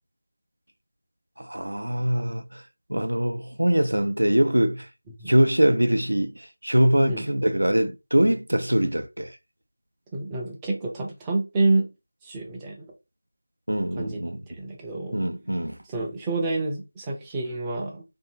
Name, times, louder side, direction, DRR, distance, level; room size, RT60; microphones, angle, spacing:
voice 1, 1.4-2.6 2.9-4.9 5.3-9.4 13.7-14.4 15.1-15.8, right 1 dB, 80° right, 0.5 m, -23 dB
voice 2, 10.1-11.9 12.2-12.9 14.0-14.2 14.5-15.2 15.9-18.0, right 2 dB, 10° right, 0.5 m, -28 dB
2.6 x 2.6 x 2.9 m
figure-of-eight pair, 170°, 0 cm